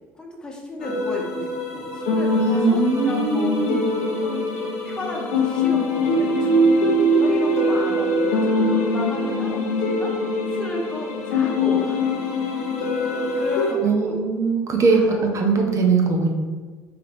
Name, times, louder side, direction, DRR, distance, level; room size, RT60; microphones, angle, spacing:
voice 1, 0.2-2.8 3.0-3.6 4.2-4.4 4.8-10.1 10.5-12.0 13.0-14.2 14.9-15.2, left 1 dB, 10° left, -2 dB, 1.0 m, -33 dB
sound 1, 0.8-13.7, left 1 dB, 90° left, 0.7 m, -22 dB
voice 2, 2.4-3.8 13.8-16.3, right 4 dB, 40° right, 2 dB, 0.7 m, -21 dB
3.6 x 3.3 x 3.4 m, 1.4 s
supercardioid pair, 75°, 8 cm